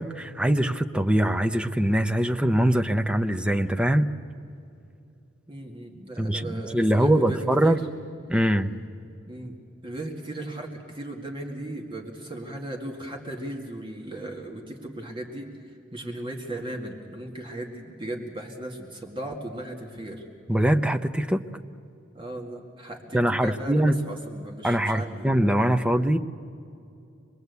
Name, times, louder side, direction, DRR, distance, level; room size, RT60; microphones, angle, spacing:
voice 1, 0.0-4.1 6.2-7.8 8.3-8.8 20.5-21.4 23.1-24.0 24.6-26.2, right 1 dB, 5° right, 7 dB, 0.7 m, -23 dB
voice 2, 5.5-7.8 9.3-9.6 9.8-20.2 22.1-25.3, right 1 dB, 25° right, 1 dB, 2.1 m, -37 dB
26.5 x 21.0 x 8.2 m, 2.7 s
head